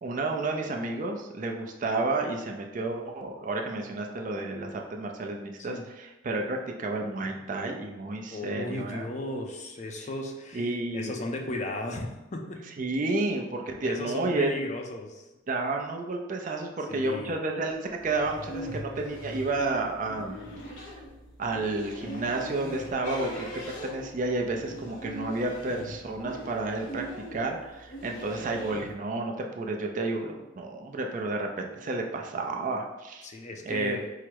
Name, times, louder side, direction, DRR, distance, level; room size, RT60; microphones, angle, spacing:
voice 1, 0.0-9.1 10.5-11.1 12.8-14.6 15.5-17.8 18.0-20.4 20.7-20.9 21.4-27.0 27.3-33.3 33.7-34.0, right 2 dB, 40° right, 2 dB, 0.4 m, -31 dB
voice 2, 8.3-12.7 13.8-15.3 16.9-17.4 33.2-34.1, left 2 dB, 35° left, 2 dB, 0.5 m, -36 dB
sound 1, 17.9-28.9, equal, 75° left, 0.9 m, -41 dB
4.7 x 2.0 x 4.5 m, 1.0 s
head